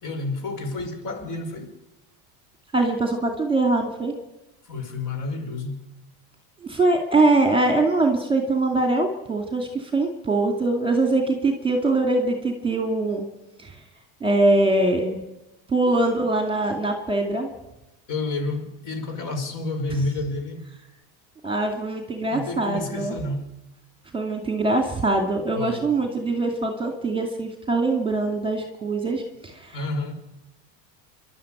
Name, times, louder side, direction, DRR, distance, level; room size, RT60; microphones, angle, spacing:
voice 1, 0.0-1.8 4.6-5.8 18.1-20.7 22.3-23.5 25.5-25.9 29.7-30.1, left 2 dB, 40° left, 6 dB, 5.7 m, -30 dB
voice 2, 2.7-4.1 6.6-13.3 13.6-13.8 14.2-15.2 15.7-17.5 21.4-23.2 24.1-29.9, right 2 dB, 10° right, 3 dB, 2.3 m, -23 dB
27.5 x 12.0 x 9.0 m, 0.98 s
cardioid pair, 150°, 47 cm